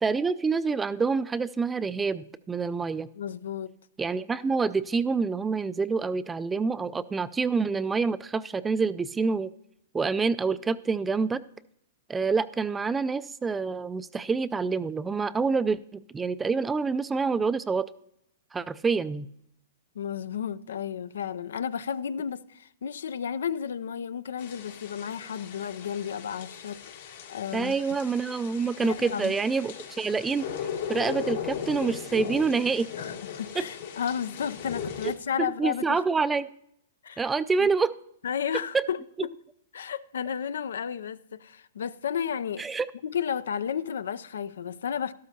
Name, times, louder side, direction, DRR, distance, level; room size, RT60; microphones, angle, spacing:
voice 1, 0.0-3.1 4.0-9.5 9.9-11.4 12.1-17.9 18.5-19.3 27.5-30.5 30.9-32.9 33.6-33.7 35.4-36.5 37.2-37.9 38.7-38.8 42.6-42.9, right 4 dB, 10° right, 0.3 m, -27 dB
voice 2, 3.2-3.7 19.9-27.7 28.8-29.3 33.0-36.0 37.0-37.3 37.6-37.7 38.2-39.3 39.7-42.7 43.0-45.1, left 8 dB, 85° left, 0.4 m, -33 dB
sound 1, 24.4-35.1, left 8 dB, 65° left, 1.5 m, -38 dB
12.5 x 12.5 x 2.8 m
hypercardioid pair, 140°, 0 cm